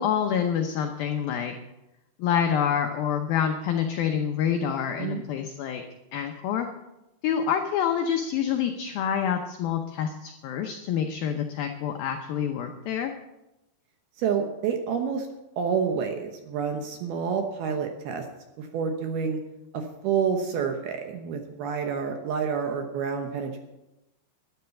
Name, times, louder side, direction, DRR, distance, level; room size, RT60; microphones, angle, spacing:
voice 1, 0.0-1.5 2.2-5.8 6.1-6.7 7.2-13.1, left 8 dB, 90° left, 5 dB, 2.0 m, -27 dB
voice 2, 14.2-15.3 15.6-18.2 18.6-19.4 19.7-23.6, right 6 dB, 70° right, 5 dB, 2.5 m, -28 dB
13.0 x 10.5 x 7.0 m, 0.95 s
omnidirectional pair, 5.5 m